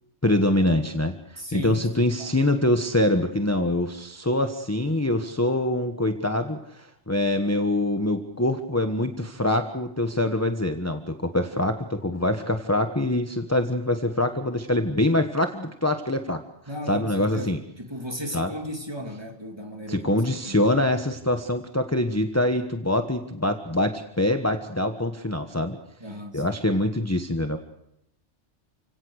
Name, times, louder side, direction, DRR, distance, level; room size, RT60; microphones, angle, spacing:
voice 1, 0.2-16.4 16.9-17.6 18.3-18.5 19.9-25.8 26.3-27.6, left 1 dB, 15° left, 1.2 m, -24 dB
voice 2, 1.4-2.3 16.7-20.7 26.0-26.5, equal, 20° right, 2.6 m, -36 dB
30.0 x 17.0 x 6.4 m
omnidirectional pair, 1.2 m